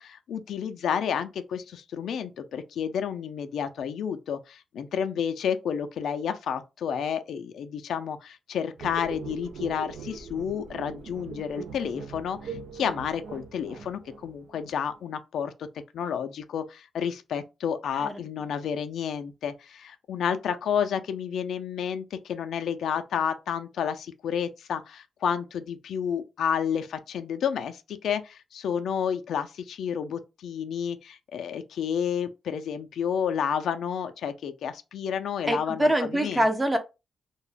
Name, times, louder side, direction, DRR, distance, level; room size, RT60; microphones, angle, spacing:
voice 1, 0.0-15.7 15.9-36.4, left 7 dB, 75° left, 0.3 m, -30 dB
sound 1, 8.8-15.0, right 5 dB, 80° right, 0.4 m, -41 dB
voice 2, 35.5-36.8, right 1 dB, 10° right, 0.4 m, -24 dB
2.2 x 2.0 x 3.1 m
wide cardioid pair, 160°, 0 cm